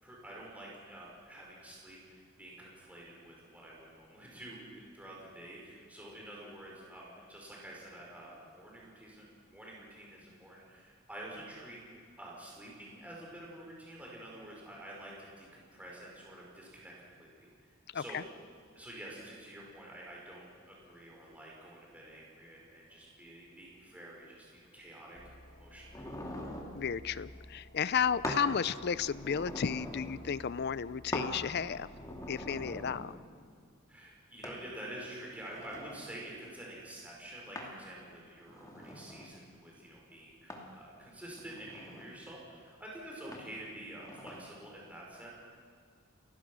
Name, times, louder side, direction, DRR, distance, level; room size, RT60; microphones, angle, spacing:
voice 1, 0.0-4.7 4.9-11.8 12.2-18.4 18.7-25.2 25.5-26.0 33.9-45.3, right 1 dB, 5° right, -4 dB, 4.9 m, -48 dB
voice 2, 17.9-18.2 26.7-31.9 32.3-33.1, left 7 dB, 55° left, 18 dB, 0.5 m, -33 dB
sound 1, 25.1-33.0, left 1 dB, 35° left, 1.5 m, -54 dB
sound 2, 25.9-26.8 28.2-28.5 28.9-30.2 31.1-31.4 31.9-33.1 34.4-34.6 35.2-36.1 37.5-37.8 38.4-39.4 40.5-40.7 41.4-42.1 43.3-43.5 43.9-44.4, left 1 dB, 15° left, 2.5 m, -42 dB
29.5 x 16.0 x 6.2 m, 2.1 s
head